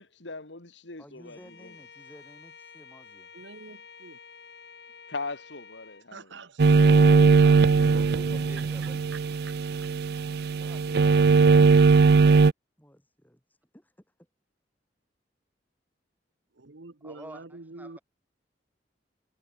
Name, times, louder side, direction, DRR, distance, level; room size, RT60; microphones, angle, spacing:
voice 1, 0.0-1.7 5.1-6.3, left 3 dB, 80° left, 2.6 m, -39 dB
voice 2, 1.0-3.3 8.6-8.8 10.6-12.3 12.8-14.3, equal, 10° left, 5.2 m, -54 dB
Bowed string instrument, 1.2-6.1, left 6 dB, 65° left, 4.5 m, -50 dB
voice 3, 3.3-3.8 4.0-4.1 6.1-7.9 8.8-9.2 9.5-9.6 16.6-18.0, right 3 dB, 85° right, 1.2 m, -46 dB
sound 1, 6.6-12.5, right 4 dB, 60° right, 0.4 m, -19 dB
voice 4, 7.4-9.0 17.0-18.0, right 1 dB, 10° right, 7.8 m, -48 dB
head